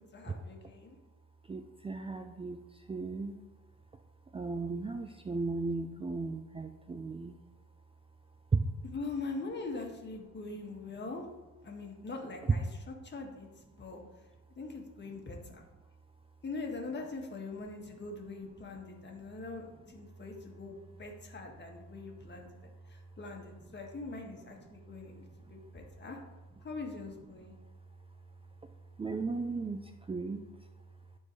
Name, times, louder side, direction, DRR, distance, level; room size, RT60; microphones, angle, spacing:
voice 1, 0.1-1.0 8.9-11.3 11.6-12.6 13.0-13.5 13.8-14.0 14.6-15.6 16.4-22.5 22.9-26.2 26.6-27.6, left 3 dB, 35° left, 1 dB, 1.9 m, -42 dB
voice 2, 1.4-3.4 3.9-7.4 8.3-8.6 10.9-11.0 12.4-12.6 15.1-15.2 15.4-15.9 18.0-18.1 18.4-19.4 19.8-20.2 21.4-21.6 21.9-23.2 23.6-23.8 24.5-26.0 27.3-31.2, right 4 dB, 20° right, 7 dB, 0.5 m, -38 dB
12.5 x 4.5 x 3.2 m, 1.2 s
cardioid pair, 90°, 30 cm